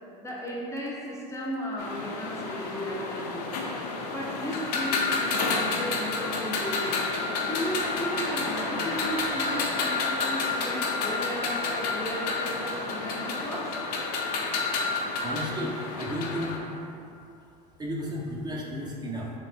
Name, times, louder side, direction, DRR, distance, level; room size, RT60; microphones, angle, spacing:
voice 1, 0.2-3.5 4.1-7.2 7.4-13.8, equal, 15° left, -4 dB, 0.6 m, -35 dB
sound 1, 1.8-16.6, left 3 dB, 75° left, 0.6 m, -30 dB
voice 2, 15.2-16.6 17.8-19.3, equal, 20° right, -3 dB, 0.7 m, -33 dB
3.2 x 3.2 x 4.3 m, 2.6 s
hypercardioid pair, 85°, 20 cm